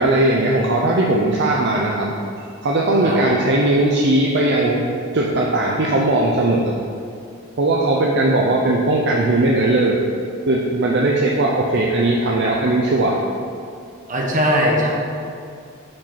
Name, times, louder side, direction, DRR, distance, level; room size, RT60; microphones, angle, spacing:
voice 1, 0.0-2.1 2.6-4.8 5.1-6.8 7.6-10.0 10.5-13.2, right 2 dB, 55° right, -2 dB, 0.6 m, -18 dB
voice 2, 14.1-14.9, equal, 35° right, -2 dB, 1.2 m, -19 dB
7.4 x 4.9 x 5.8 m, 2.3 s
head